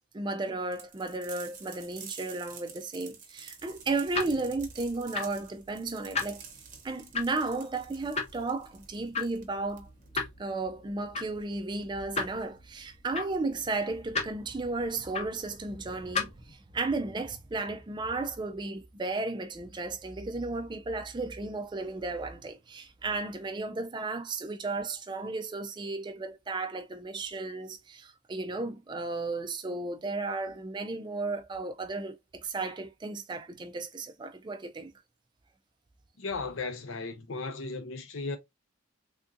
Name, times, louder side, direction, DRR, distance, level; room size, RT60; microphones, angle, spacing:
voice 1, 0.0-6.4 6.8-9.9 10.4-34.9, right 3 dB, 20° right, 0.3 m, -34 dB
sound 1, 0.7-10.1, right 6 dB, 35° right, 0.7 m, -49 dB
sound 2, 3.6-16.5, left 4 dB, 30° left, 0.7 m, -38 dB
voice 2, 36.2-38.4, left 3 dB, 65° left, 0.6 m, -36 dB
3.5 x 2.6 x 2.5 m
head